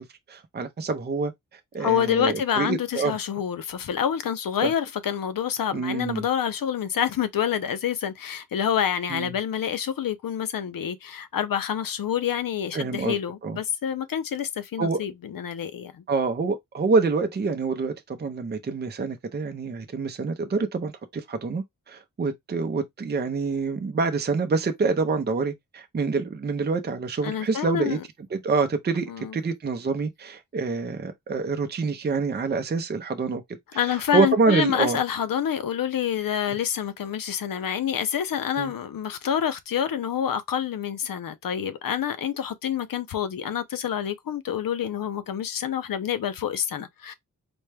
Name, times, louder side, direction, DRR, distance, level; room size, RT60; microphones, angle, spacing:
voice 1, 0.3-1.3 1.7-3.2 4.6-4.7 5.7-6.2 9.1-9.3 12.7-13.2 13.4-13.6 14.8-15.0 16.1-28.0 28.3-33.4 33.8-35.0 38.6-38.7, right 4 dB, 30° right, 0.5 m, -26 dB
voice 2, 1.8-16.0 27.2-28.0 29.1-29.3 33.8-47.1, left 9 dB, 85° left, 0.6 m, -27 dB
4.3 x 2.2 x 3.3 m
wide cardioid pair, 130°, 33 cm